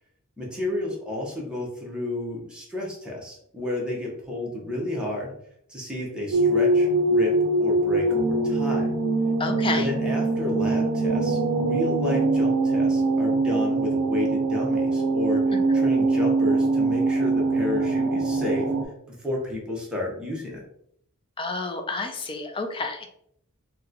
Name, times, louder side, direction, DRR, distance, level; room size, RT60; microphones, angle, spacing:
voice 1, 0.4-5.3 5.7-9.0 9.7-18.7 19.1-20.6, left 2 dB, 5° right, -3 dB, 0.8 m, -31 dB
sound 1, 6.3-18.8, right 2 dB, 65° right, 0.5 m, -23 dB
voice 2, 9.4-9.9 21.4-23.1, left 3 dB, 25° left, 5 dB, 0.4 m, -29 dB
3.0 x 2.2 x 3.7 m, 0.71 s
head